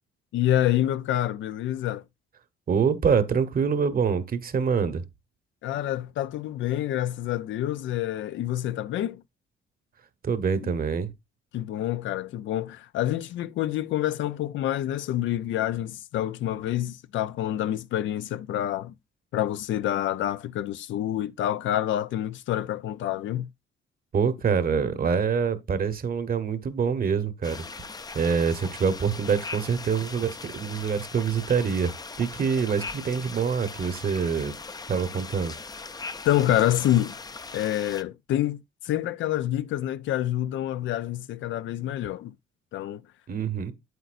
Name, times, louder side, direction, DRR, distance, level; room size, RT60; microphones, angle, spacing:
voice 1, 0.3-2.0 5.6-9.2 10.6-10.7 11.5-18.9 19.3-23.5 36.2-37.1 37.5-42.3 42.7-43.0, left 12 dB, 75° left, 0.5 m, -27 dB
voice 2, 2.7-5.0 10.2-11.1 24.1-27.6 28.1-31.9 32.2-34.5 34.9-35.5 43.3-43.7, right 6 dB, 45° right, 1.1 m, -25 dB
sound 1, 27.4-38.0, left 4 dB, 20° left, 0.5 m, -40 dB
8.1 x 8.1 x 2.5 m
cardioid pair, 90°, 20 cm